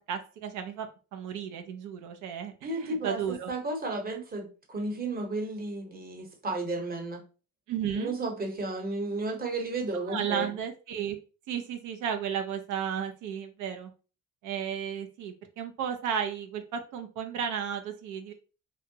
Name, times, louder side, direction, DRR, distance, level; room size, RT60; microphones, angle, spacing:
voice 1, 0.1-3.5 7.7-8.1 10.1-11.2 11.5-13.9 14.4-18.3, right 8 dB, 85° right, 6 dB, 0.5 m, -34 dB
voice 2, 2.6-3.2 3.5-7.2 7.9-10.5, right 2 dB, 30° right, 2 dB, 0.9 m, -33 dB
2.7 x 2.1 x 2.7 m, 0.35 s
cardioid pair, 90°, 30 cm